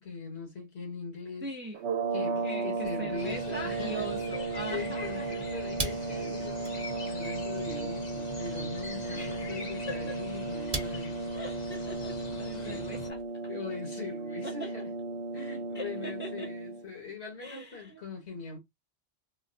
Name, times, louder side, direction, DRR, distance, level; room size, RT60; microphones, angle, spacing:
voice 1, 0.0-1.5 2.1-4.4 4.7-11.2 12.5-12.9 13.5-14.9 15.3-18.6, left 4 dB, 70° left, 1.7 m, -41 dB
voice 2, 1.4-1.8 2.4-5.5 5.8-5.9 6.2-6.5 9.1-9.6 9.9-10.1 11.3-13.2 14.4-14.7 15.7-16.5 17.4-18.0, right 1 dB, 15° right, 0.4 m, -41 dB
sound 1, 1.7-16.9, right 3 dB, 85° right, 0.9 m, -35 dB
sound 2, 2.8-13.3, right 3 dB, 40° right, 0.8 m, -44 dB
sound 3, 3.2-13.1, left 2 dB, 45° left, 0.8 m, -43 dB
3.8 x 2.1 x 2.5 m
omnidirectional pair, 1.1 m